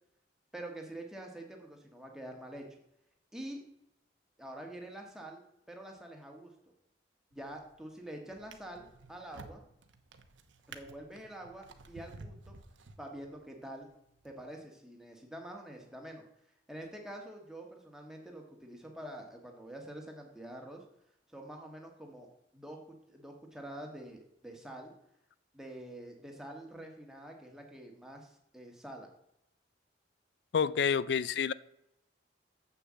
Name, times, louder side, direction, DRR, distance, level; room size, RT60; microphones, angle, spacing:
voice 1, 0.5-2.6 3.3-3.6 4.4-5.4 5.7-6.5 7.3-9.6 10.7-12.5 13.0-13.9 14.2-16.2 16.7-20.8 21.3-22.3 22.5-22.8 23.1-24.9 25.5-29.1, right 1 dB, 5° right, 1 dB, 1.5 m, -46 dB
Drawer open or close, 7.3-7.8 8.3-13.5 14.2-14.4, right 3 dB, 85° right, 0.9 m, -52 dB
voice 2, 30.5-31.5, left 7 dB, 60° left, 19 dB, 0.4 m, -28 dB
7.2 x 6.7 x 7.5 m, 0.81 s
head